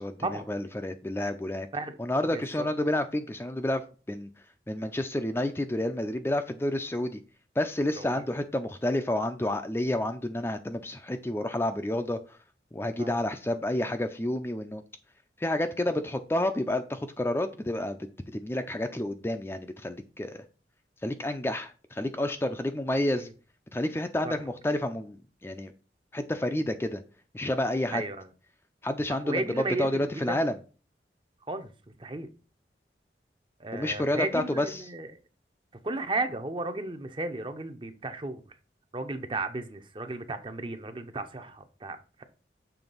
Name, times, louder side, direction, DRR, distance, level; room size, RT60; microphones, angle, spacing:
voice 1, 0.0-1.7 2.0-3.8 4.1-4.3 4.7-7.2 7.6-12.4 12.7-14.8 15.4-18.0 18.3-20.4 21.0-23.3 23.7-25.7 26.1-27.0 27.3-28.0 28.8-30.5 33.7-34.8, left 1 dB, 15° left, 7 dB, 0.4 m, -30 dB
voice 2, 2.3-2.7 8.0-8.2 13.0-13.2 23.1-23.3 24.2-24.4 27.9-28.3 29.1-30.4 31.5-31.7 32.0-32.3 33.6-35.1 35.8-38.4 38.9-42.2, right 2 dB, 30° right, 9 dB, 0.7 m, -34 dB
7.0 x 3.3 x 5.4 m, 0.35 s
head